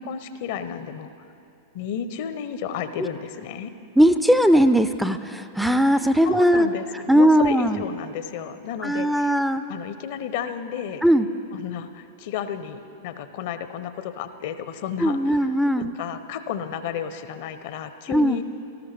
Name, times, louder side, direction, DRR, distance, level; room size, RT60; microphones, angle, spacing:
voice 1, 0.0-1.1 1.7-3.7 6.2-9.3 9.7-11.0 11.5-18.4, left 8 dB, 55° left, 11 dB, 0.6 m, -32 dB
voice 2, 4.0-6.7 7.1-7.8 8.8-9.6 11.0-11.3 15.0-15.9 18.1-18.4, equal, ahead, 10 dB, 0.4 m, -19 dB
18.5 x 13.5 x 3.3 m, 2.6 s
figure-of-eight pair, 95°, 0 cm